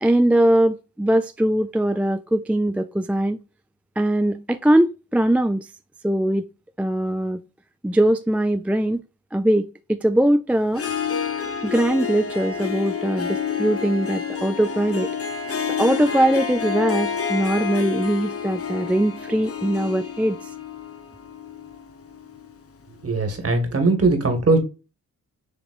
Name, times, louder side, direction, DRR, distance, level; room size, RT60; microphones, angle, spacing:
voice 1, 0.0-3.4 4.0-5.7 6.0-6.4 6.8-7.4 7.8-9.0 9.3-10.8 11.6-15.1 15.8-20.5, right 1 dB, 5° right, 0.4 m, -21 dB
Harp, 10.7-22.6, left 7 dB, 40° left, 0.9 m, -29 dB
voice 2, 23.0-24.6, right 3 dB, 40° right, 1.8 m, -20 dB
7.1 x 2.9 x 2.5 m
cardioid pair, 55°, 35 cm